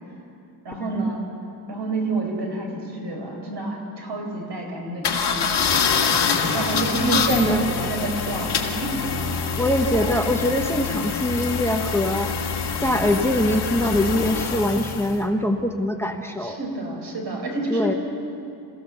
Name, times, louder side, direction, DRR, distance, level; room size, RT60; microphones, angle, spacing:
voice 1, 0.6-1.2 1.7-5.7 6.4-9.0 16.4-17.9, right 3 dB, 75° right, 1 dB, 4.9 m, -28 dB
sound 1, 5.0-15.2, left 6 dB, 70° left, 2.1 m, -25 dB
voice 2, 7.0-7.7 9.6-12.3 12.8-16.6 17.7-18.0, left 1 dB, 5° left, 4 dB, 0.9 m, -23 dB
28.0 x 15.5 x 6.9 m, 2.7 s
wide cardioid pair, 180°, 42 cm